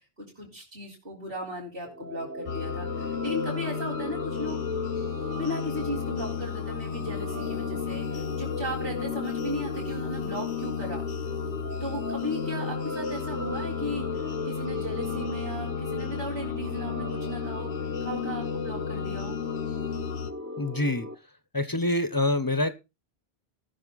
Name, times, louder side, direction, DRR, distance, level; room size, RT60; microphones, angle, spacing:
voice 1, 0.0-4.6 5.3-11.0 11.8-14.1 14.4-17.7 18.0-19.4, equal, 55° right, -5 dB, 4.3 m, -36 dB
sound 1, 1.8-21.1, left 1 dB, 15° right, 0.9 m, -37 dB
sound 2, 2.5-20.3, left 8 dB, 80° left, 1.2 m, -34 dB
voice 2, 20.6-21.1 21.5-22.8, left 2 dB, 20° left, 13 dB, 0.8 m, -26 dB
19.0 x 6.8 x 4.0 m, 0.28 s
omnidirectional pair, 1.1 m